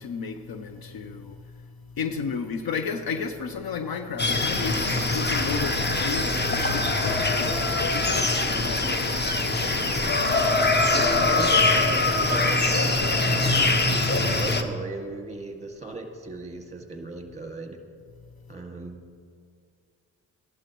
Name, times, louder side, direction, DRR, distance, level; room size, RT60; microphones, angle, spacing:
voice 1, 0.0-1.7 2.0-9.6, left 5 dB, 50° left, 0.8 m, -33 dB
sound 1, 4.2-14.6, left 2 dB, 20° left, 1.0 m, -23 dB
voice 2, 10.8-17.8 18.5-19.0, right 3 dB, 15° right, 2.0 m, -37 dB
14.5 x 11.5 x 3.1 m
hypercardioid pair, 45°, 47 cm